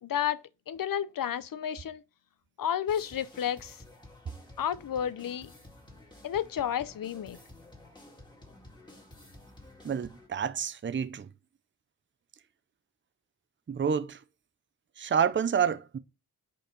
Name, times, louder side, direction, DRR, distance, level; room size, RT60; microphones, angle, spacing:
voice 1, 0.0-2.0 2.6-3.8 4.6-5.5 6.2-7.4, left 9 dB, 60° left, 0.5 m, -31 dB
sound 1, 2.9-10.3, left 1 dB, 10° left, 2.0 m, -52 dB
voice 2, 9.8-11.3 13.7-14.2 15.0-16.0, right 7 dB, 30° right, 0.5 m, -28 dB
5.3 x 4.3 x 5.1 m
wide cardioid pair, 115°, 38 cm